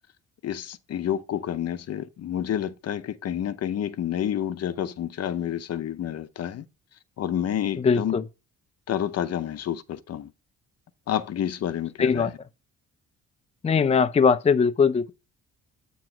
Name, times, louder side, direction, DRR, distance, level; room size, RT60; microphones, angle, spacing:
voice 1, 0.4-6.7 7.2-8.2 8.9-10.3 11.1-12.3, left 10 dB, 55° left, 0.7 m, -29 dB
voice 2, 7.8-8.2 12.0-12.3 13.6-15.1, left 5 dB, 20° left, 0.5 m, -20 dB
8.7 x 3.1 x 5.9 m
cardioid pair, 90°, 30 cm